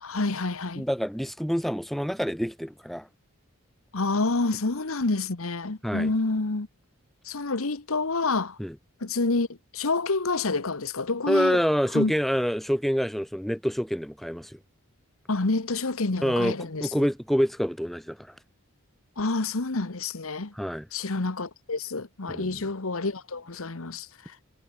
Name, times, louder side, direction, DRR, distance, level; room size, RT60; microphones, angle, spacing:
voice 1, 0.0-0.8 3.9-6.7 7.2-8.6 9.0-11.6 11.9-12.1 15.3-17.1 19.2-20.5 20.9-24.4, left 3 dB, 70° left, 1.2 m, -28 dB
voice 2, 0.8-3.1 5.8-6.1 8.6-8.7 11.3-14.6 16.2-18.3 20.6-20.9 22.3-22.6, equal, ahead, 2.0 m, -27 dB
head